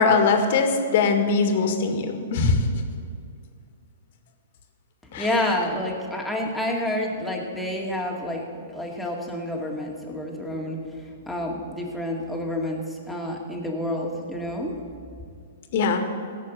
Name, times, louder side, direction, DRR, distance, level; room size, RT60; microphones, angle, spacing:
voice 1, 0.0-2.7 5.1-5.3 15.7-16.1, left 4 dB, 55° left, 6 dB, 1.9 m, -21 dB
voice 2, 5.1-14.7, left 1 dB, 5° left, -1 dB, 2.3 m, -29 dB
16.0 x 6.8 x 8.1 m, 2.3 s
hypercardioid pair, 130°, 0 cm